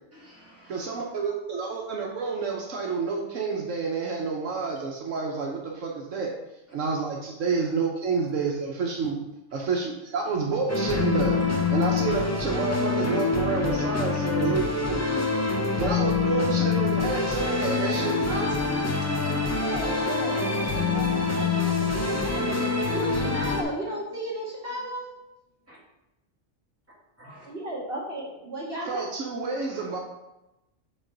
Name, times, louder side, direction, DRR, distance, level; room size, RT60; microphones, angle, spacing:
voice 1, 0.1-0.9 7.6-7.7 9.6-9.8 14.4-14.5 15.5-16.0 16.4-16.6 17.9-18.1 18.3-18.6 19.0-19.9 25.7-25.8 27.2-27.5 29.6-29.9, equal, 10° right, -7 dB, 2.3 m, -47 dB
voice 2, 0.7-6.3 6.7-9.2 9.5-11.4 11.7-15.2 15.8-18.6 28.9-30.0, right 4 dB, 75° right, -1 dB, 1.2 m, -29 dB
voice 3, 1.3-1.8 19.5-25.1 27.4-29.1, right 1 dB, 45° right, -5 dB, 2.1 m, -35 dB
sound 1, 10.7-23.6, left 4 dB, 20° left, 0.5 m, -25 dB
6.7 x 4.0 x 5.0 m, 0.94 s
omnidirectional pair, 1.3 m